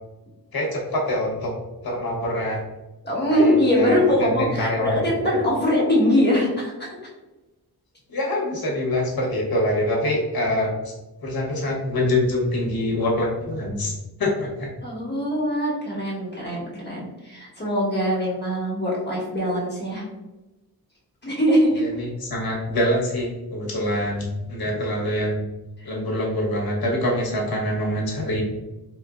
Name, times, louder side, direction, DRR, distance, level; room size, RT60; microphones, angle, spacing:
voice 1, 0.5-1.5 1.8-2.6 3.3-5.0 5.3-5.4 8.1-10.9 11.2-14.7 21.7-25.4 25.8-28.4, left 1 dB, 70° left, -2 dB, 1.2 m, -25 dB
voice 2, 3.0-6.9 14.8-20.0 21.2-21.7 25.8-25.9, equal, 25° left, -6 dB, 1.3 m, -22 dB
4.3 x 3.0 x 2.4 m, 1.1 s
wide cardioid pair, 130°, 38 cm